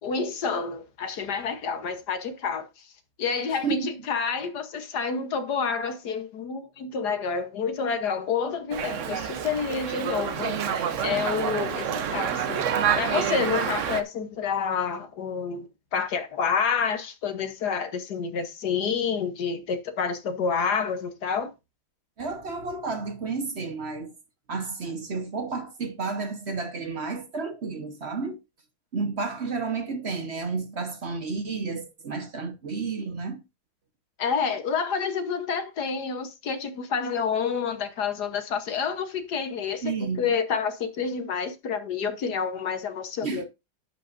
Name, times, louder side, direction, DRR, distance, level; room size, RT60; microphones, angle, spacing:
voice 1, 0.0-2.9 3.2-12.7 12.9-21.5 34.2-43.5, left 6 dB, 55° left, 1.5 m, -29 dB
Dog, 8.7-14.0, right 8 dB, 60° right, 0.8 m, -28 dB
voice 2, 22.2-24.1 24.5-28.4 28.9-33.4 39.8-40.3 43.2-43.4, right 4 dB, 40° right, 1.0 m, -31 dB
11.5 x 8.4 x 2.6 m
omnidirectional pair, 2.2 m